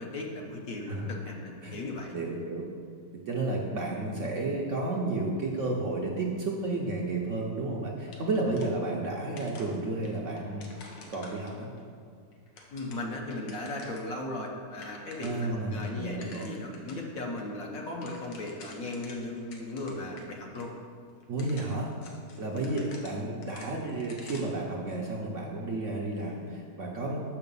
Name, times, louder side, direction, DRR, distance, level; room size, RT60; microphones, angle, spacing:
voice 1, 0.0-2.2 12.7-20.7 22.7-22.8, left 2 dB, 55° left, 0 dB, 1.2 m, -37 dB
voice 2, 2.1-2.6 3.3-10.7 11.1-11.7 15.2-16.5 21.3-21.9 22.4-27.2, right 2 dB, 55° right, -2 dB, 0.9 m, -32 dB
sound 1, 8.1-9.1 9.4-11.8 12.3-14.1 14.4-14.5 14.7-15.5 15.8-17.0 17.4-17.5 17.8-20.3 20.5-20.6 21.2-24.6, left 3 dB, 85° left, 1.6 m, -50 dB
6.5 x 5.8 x 5.4 m, 2.2 s
omnidirectional pair, 1.9 m